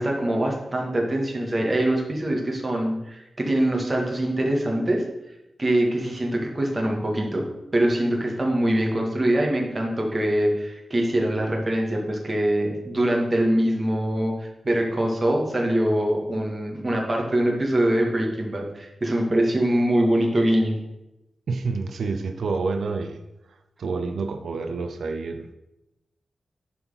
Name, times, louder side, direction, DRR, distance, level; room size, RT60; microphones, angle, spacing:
voice 1, 0.0-5.0 5.6-7.4 7.7-20.8, right 1 dB, 25° right, 0 dB, 1.9 m, -23 dB
voice 2, 21.5-23.2 23.8-25.5, right 4 dB, 80° right, 7 dB, 0.7 m, -28 dB
11.0 x 4.4 x 5.7 m, 0.91 s
wide cardioid pair, 125°, 0 cm